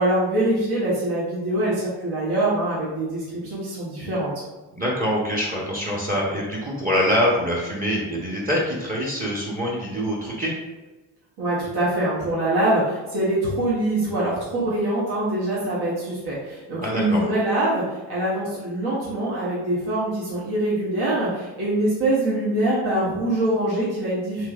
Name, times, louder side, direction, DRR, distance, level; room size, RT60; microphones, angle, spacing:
voice 1, 0.0-4.3 11.4-24.5, right 1 dB, 55° right, -8 dB, 1.3 m, -24 dB
voice 2, 4.7-10.5 16.8-17.2, equal, 20° right, -3 dB, 1.0 m, -24 dB
3.2 x 3.1 x 2.4 m, 1.2 s
supercardioid pair, 50°, 46 cm